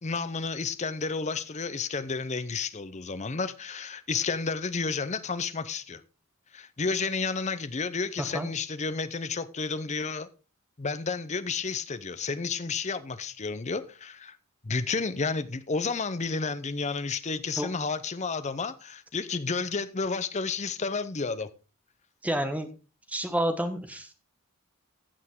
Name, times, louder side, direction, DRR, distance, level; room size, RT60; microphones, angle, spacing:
voice 1, 0.0-6.0 6.5-10.3 10.8-14.4 14.6-21.5, left 4 dB, 30° left, 0.6 m, -31 dB
voice 2, 8.2-8.5 17.6-17.7 22.2-22.7 23.1-24.1, right 1 dB, 5° right, 1.1 m, -29 dB
15.0 x 7.0 x 3.7 m
head